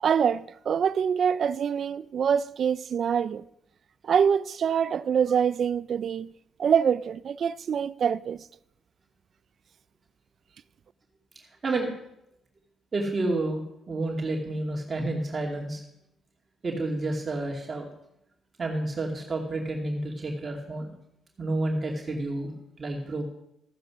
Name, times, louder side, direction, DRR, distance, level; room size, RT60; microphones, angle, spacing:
voice 1, 0.0-3.4 4.1-6.3 6.6-8.4, right 7 dB, 55° right, 0.5 m, -25 dB
voice 2, 12.9-13.6 13.9-15.8 16.6-17.9 18.6-20.9 21.4-22.5 22.8-23.2, right 2 dB, 35° right, 2.5 m, -30 dB
14.5 x 9.4 x 6.3 m
cardioid pair, 90°, 0 cm